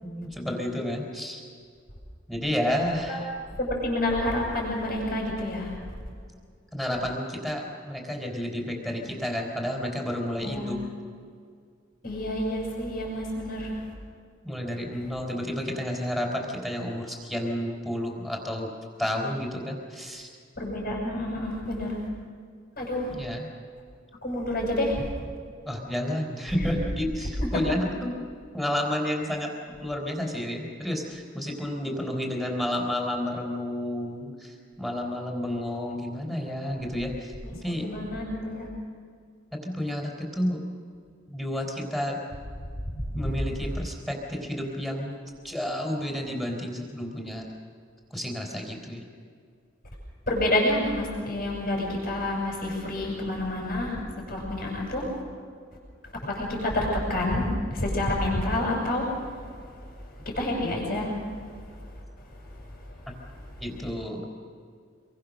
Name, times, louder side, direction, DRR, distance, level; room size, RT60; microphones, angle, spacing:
voice 1, 0.0-1.5 2.3-3.3 6.7-10.8 14.4-18.7 19.0-20.3 23.1-23.5 25.7-28.2 28.5-29.5 29.8-37.3 37.6-37.9 39.6-40.6 41.3-42.2 43.1-47.5 48.1-49.0 63.6-64.3, left 1 dB, ahead, 1 dB, 4.4 m, -31 dB
voice 2, 3.6-5.8 10.4-10.7 12.0-13.8 20.6-22.1 22.8-23.1 24.2-25.1 26.6-26.7 27.4-27.6 37.4-37.5 37.8-38.7 43.0-43.3 50.3-54.0 54.3-55.2 56.2-59.6 60.2-61.2 62.3-62.4 62.9-63.0, left 1 dB, 50° left, -3 dB, 7.0 m, -28 dB
27.0 x 23.0 x 6.6 m, 2.1 s
head